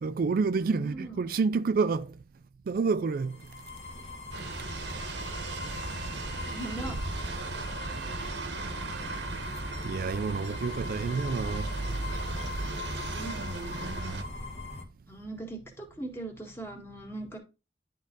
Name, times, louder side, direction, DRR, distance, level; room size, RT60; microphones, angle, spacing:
voice 1, 0.0-2.1 2.7-3.4 9.8-11.7, right 4 dB, 55° right, 0.4 m, -28 dB
voice 2, 0.6-1.2 6.5-7.0 13.1-13.4 15.1-17.4, right 2 dB, 15° left, 1.8 m, -40 dB
sound 1, 3.1-14.8, left 3 dB, 40° left, 1.5 m, -41 dB
sound 2, 4.3-14.2, right 3 dB, 85° right, 1.1 m, -36 dB
10.5 x 3.8 x 3.8 m
head